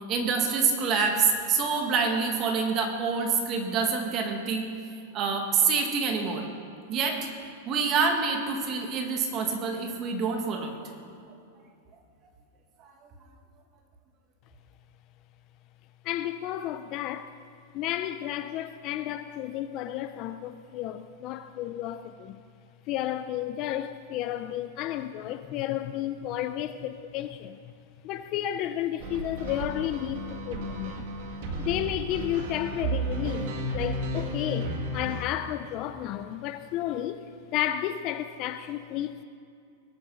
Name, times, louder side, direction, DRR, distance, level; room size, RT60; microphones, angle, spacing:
voice 1, 0.1-4.7 5.1-6.5 6.9-7.3 7.7-10.8, right 5 dB, 25° right, 1.8 m, -26 dB
voice 2, 16.0-17.4 17.7-22.4 22.9-27.7 28.0-31.0 31.6-33.5 33.7-39.2, left 12 dB, 30° left, 0.4 m, -32 dB
sound 1, 29.0-35.2, right 1 dB, 50° right, 2.0 m, -33 dB
21.5 x 9.5 x 6.2 m
supercardioid pair, 175°, 0 cm